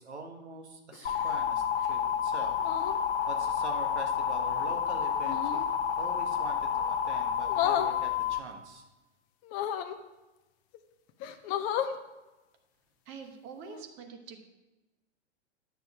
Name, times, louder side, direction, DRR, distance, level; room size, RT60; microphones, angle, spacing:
voice 1, 0.0-2.5 2.9-5.7 6.0-8.8, right 3 dB, 70° right, 3 dB, 1.6 m, -44 dB
sound 1, 0.9-1.4 2.6-3.0 5.2-5.7 7.5-7.9 9.4-10.0 10.7-10.8 11.2-12.0 13.6-13.8, left 10 dB, 25° left, 0.5 m, -32 dB
sound 2, 1.1-8.4, left 8 dB, 75° left, 0.8 m, -30 dB
voice 2, 13.0-14.4, right 6 dB, 30° right, 5 dB, 1.2 m, -45 dB
9.9 x 6.6 x 4.8 m, 1.1 s
figure-of-eight pair, 110°, 35 cm